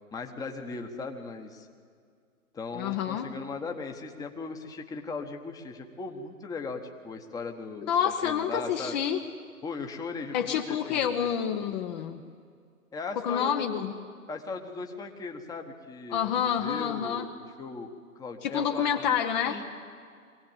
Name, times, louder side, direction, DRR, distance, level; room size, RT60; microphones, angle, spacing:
voice 1, 0.1-1.7 2.5-9.0 9.6-11.3 12.9-13.8 14.3-17.9 18.1-19.2 19.5-19.6, left 4 dB, 10° left, 4 dB, 1.2 m, -38 dB
voice 2, 2.7-3.3 7.9-9.2 10.3-12.2 13.2-13.9 16.1-17.3 18.4-19.6, left 8 dB, 30° left, 5 dB, 1.0 m, -28 dB
23.0 x 17.0 x 8.9 m, 2.2 s
figure-of-eight pair, 130°, 43 cm